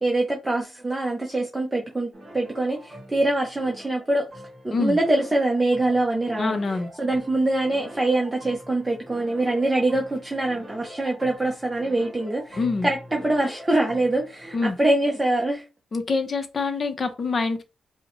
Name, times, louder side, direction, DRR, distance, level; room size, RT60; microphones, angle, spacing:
voice 1, 0.0-4.3 4.6-6.6 7.0-15.7, right 2 dB, 15° right, 0.6 m, -24 dB
sound 1, 2.1-14.7, equal, 30° right, 1.8 m, -44 dB
voice 2, 6.4-6.9 12.6-12.9 14.5-14.8 15.9-17.6, left 3 dB, 35° left, 0.7 m, -25 dB
5.1 x 2.1 x 3.0 m
wide cardioid pair, 135°, 0 cm